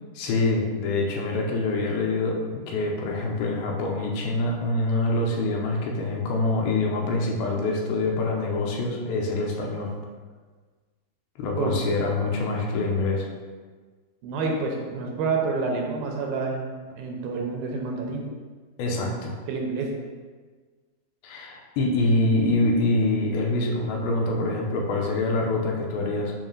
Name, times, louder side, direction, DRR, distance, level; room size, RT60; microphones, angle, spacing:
voice 1, 0.2-9.9 11.4-13.3 18.8-19.3 21.2-26.3, left 2 dB, 85° left, 0 dB, 2.6 m, -25 dB
voice 2, 14.2-16.7 17.0-18.2 18.9-19.0 19.5-19.9, right 4 dB, 80° right, 0 dB, 2.4 m, -28 dB
7.4 x 2.7 x 5.2 m, 1.5 s
omnidirectional pair, 4.4 m